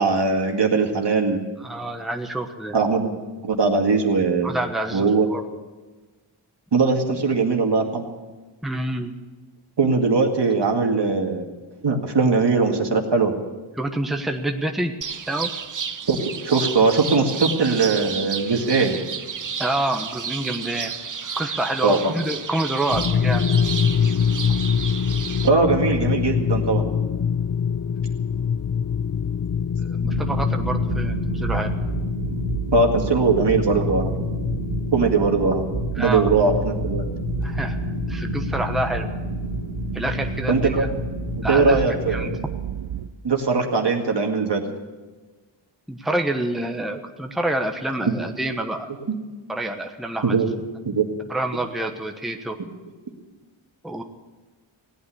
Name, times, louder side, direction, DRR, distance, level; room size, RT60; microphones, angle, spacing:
voice 1, 0.0-1.4 2.7-3.1 3.4-4.5 4.9-5.3 6.7-8.1 9.8-11.4 11.8-13.3 16.1-16.2 16.4-19.0 21.8-22.1 25.4-26.8 32.7-34.1 34.9-35.6 36.0-37.0 40.5-40.8 41.5-42.4 43.2-44.6 50.2-50.5 50.9-51.0, right 4 dB, 55° right, 2 dB, 2.1 m, -20 dB
voice 2, 1.6-2.8 4.4-5.4 8.6-9.1 13.8-14.9 15.3-15.5 19.6-20.9 21.4-23.5 29.8-31.8 35.9-36.3 37.4-39.1 39.9-40.9 41.4-42.3 45.9-48.9 49.5-50.4 51.3-52.6 53.8-54.0, right 1 dB, ahead, 4 dB, 1.1 m, -27 dB
sound 1, 15.0-25.5, right 6 dB, 40° right, 0.8 m, -31 dB
sound 2, 22.9-42.4, left 7 dB, 40° left, 0.5 m, -26 dB
sound 3, 30.0-43.1, right 8 dB, 80° right, 0.8 m, -31 dB
17.0 x 9.0 x 8.4 m, 1.3 s
cardioid pair, 65°, 48 cm